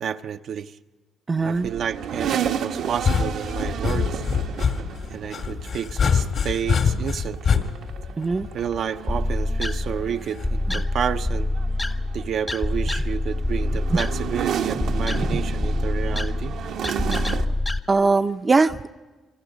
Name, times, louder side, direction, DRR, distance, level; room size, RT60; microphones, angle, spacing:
voice 1, 0.0-0.8 1.4-4.2 5.1-7.7 8.5-11.5 12.1-16.5, right 8 dB, 65° right, 0.7 m, -30 dB
voice 2, 1.3-1.7 8.2-8.5 13.9-14.0 15.3-15.4 17.9-18.9, right 3 dB, 30° right, 0.6 m, -21 dB
sound 1, 1.4-17.4, right 8 dB, 85° right, 1.2 m, -33 dB
sound 2, 2.9-9.0 10.4-10.7, left 6 dB, 65° left, 2.2 m, -24 dB
sound 3, 9.1-17.8, left 2 dB, 15° left, 0.9 m, -26 dB
28.0 x 23.5 x 5.1 m
cardioid pair, 90°, 0 cm